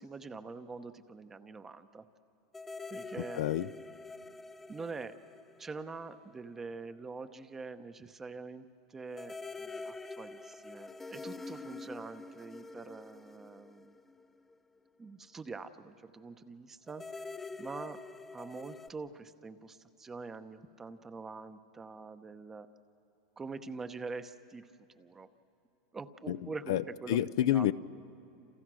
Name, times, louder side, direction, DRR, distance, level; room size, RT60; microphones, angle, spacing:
voice 1, 0.0-2.0 2.9-3.5 4.7-5.2 5.6-14.0 15.0-17.0 17.6-18.0 18.3-22.7 23.4-24.7 24.9-25.3 25.9-27.7, right 4 dB, 15° right, 11 dB, 0.9 m, -45 dB
sound 1, 2.5-6.3 6.6-6.7 9.1-14.5 16.9-18.9, left 3 dB, 10° left, 0.5 m, -46 dB
voice 2, 3.3-3.7 26.3-26.4 26.7-27.7, left 12 dB, 70° left, 15 dB, 0.6 m, -29 dB
29.0 x 27.5 x 6.3 m, 3.0 s
supercardioid pair, 145°, 2 cm